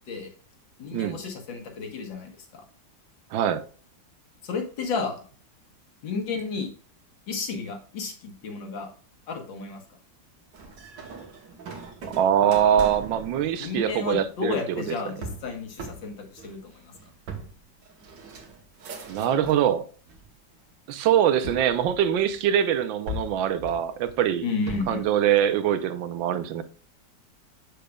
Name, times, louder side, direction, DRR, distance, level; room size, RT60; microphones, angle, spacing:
voice 1, 0.8-2.6 4.4-5.2 6.0-6.7 7.3-8.9 9.3-9.8 13.6-16.9 24.4-25.0, left 4 dB, 85° left, 2.0 m, -32 dB
voice 2, 3.3-3.6 12.2-14.8 19.1-19.8 20.9-24.5 24.9-26.6, right 9 dB, 90° right, 1.4 m, -23 dB
sound 1, 10.5-19.7 20.1-20.7 21.4-22.5 23.1-25.1, right 1 dB, 70° right, 1.6 m, -40 dB
6.7 x 6.4 x 2.3 m
omnidirectional pair, 2.0 m